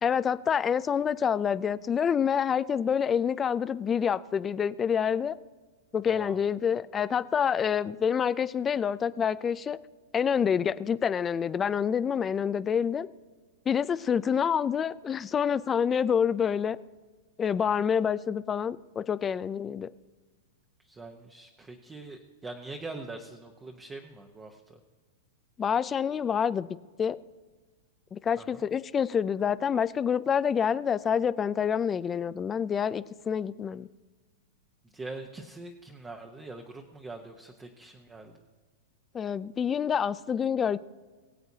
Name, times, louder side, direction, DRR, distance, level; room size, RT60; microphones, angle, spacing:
voice 1, 0.0-5.4 5.9-9.8 10.1-13.1 13.7-16.8 17.4-19.9 25.6-26.7 27.0-27.2 28.1-33.9 39.1-40.8, left 7 dB, 20° left, 0.3 m, -27 dB
voice 2, 6.1-6.4 20.8-24.8 28.4-28.6 34.9-38.4, right 3 dB, 15° right, 0.9 m, -43 dB
22.5 x 7.9 x 2.8 m
hypercardioid pair, 145°, 0 cm